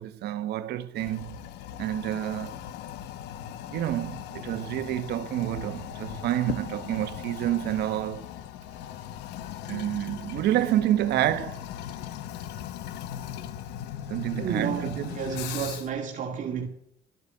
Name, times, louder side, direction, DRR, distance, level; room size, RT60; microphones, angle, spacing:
voice 1, 0.0-1.5 1.8-2.6 3.7-8.3 9.7-11.6 14.1-15.1, right 13 dB, 75° right, 1.2 m, -28 dB
Toilet flush, 0.9-16.0, left 11 dB, 90° left, 1.0 m, -39 dB
voice 2, 14.3-16.7, right 7 dB, 50° right, 2.3 m, -31 dB
13.0 x 8.2 x 8.7 m
cardioid pair, 110°, 17 cm